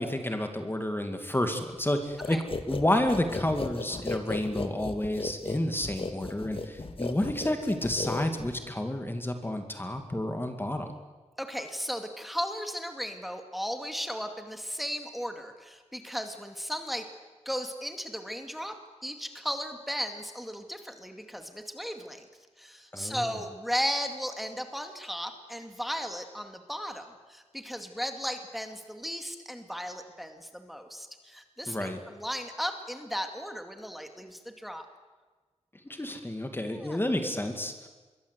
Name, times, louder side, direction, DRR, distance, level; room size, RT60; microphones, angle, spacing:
voice 1, 0.0-2.4 2.7-10.9 22.9-23.3 31.7-32.0 35.9-37.9, left 1 dB, 20° left, 5 dB, 2.2 m, -30 dB
sound 1, 2.2-8.7, left 3 dB, 50° left, 1.9 m, -36 dB
voice 2, 11.4-17.1 17.5-18.8 19.0-22.3 22.6-34.9 36.7-37.0, equal, ahead, 5 dB, 2.3 m, -36 dB
26.0 x 22.5 x 8.3 m, 1.3 s
wide cardioid pair, 100°, 12 cm